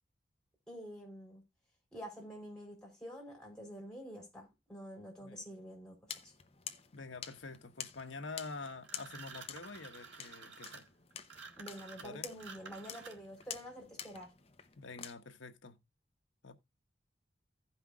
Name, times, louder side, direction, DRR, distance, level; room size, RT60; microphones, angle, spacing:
voice 1, 0.7-1.4 1.9-6.0 6.2-6.3 11.6-14.3, equal, 5° left, 4.3 m, -48 dB
voice 2, 5.2-5.6 6.9-10.9 12.0-12.3 14.8-15.8 16.4-16.5, left 3 dB, 85° left, 1.1 m, -47 dB
sound 1, 6.1-15.1, left 8 dB, 30° left, 0.7 m, -49 dB
sound 2, 8.8-13.4, right 5 dB, 75° right, 1.7 m, -51 dB
16.0 x 5.6 x 2.3 m
head